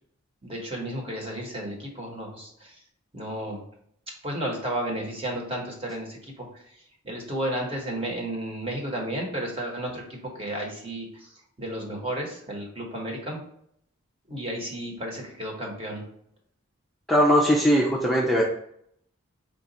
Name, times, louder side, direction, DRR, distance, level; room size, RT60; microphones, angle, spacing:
voice 1, 0.4-2.8 3.1-3.6 4.2-6.6 7.0-11.3 11.6-13.4 14.3-16.0, right 1 dB, 25° right, 0 dB, 1.1 m, -33 dB
voice 2, 17.1-18.4, equal, ahead, -5 dB, 0.5 m, -20 dB
4.9 x 2.4 x 4.0 m, 0.68 s
head